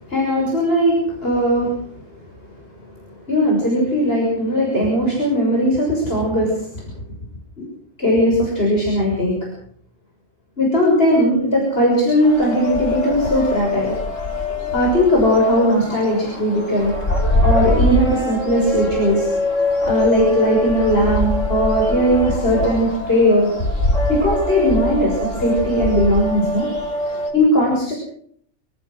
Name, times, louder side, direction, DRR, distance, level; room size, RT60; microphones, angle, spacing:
voice 1, 0.1-1.8 2.1-2.2 3.3-6.7 8.0-9.4 10.6-13.9 14.7-16.9 17.4-19.3 19.8-23.5 24.1-26.9 27.3-27.9, equal, 50° left, -2 dB, 7.0 m, -18 dB
sound 1, 12.2-27.3, left 1 dB, 75° left, 5.2 m, -23 dB
28.5 x 15.5 x 6.4 m, 0.63 s
omnidirectional pair, 1.3 m